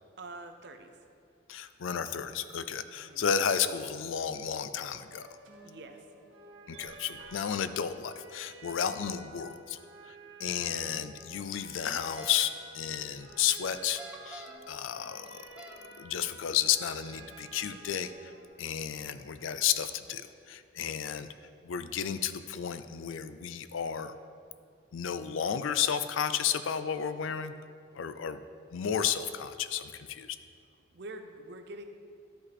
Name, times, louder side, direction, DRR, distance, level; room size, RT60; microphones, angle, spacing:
voice 1, 0.2-0.9 2.9-3.2 5.6-6.0 30.9-31.8, right 2 dB, 55° right, 6 dB, 0.6 m, -45 dB
voice 2, 1.5-5.3 6.7-9.8 10.4-15.4 16.0-18.3 18.6-21.3 21.6-24.1 24.9-27.5 28.0-28.4 28.7-30.4, left 8 dB, 75° left, 12 dB, 0.4 m, -32 dB
sound 1, 5.1-18.5, right 3 dB, 80° right, 1.8 m, -51 dB
sound 2, 11.9-12.4 13.8-14.7 15.3-15.8, right 2 dB, 5° right, 0.4 m, -46 dB
12.0 x 5.3 x 4.1 m, 2.3 s
head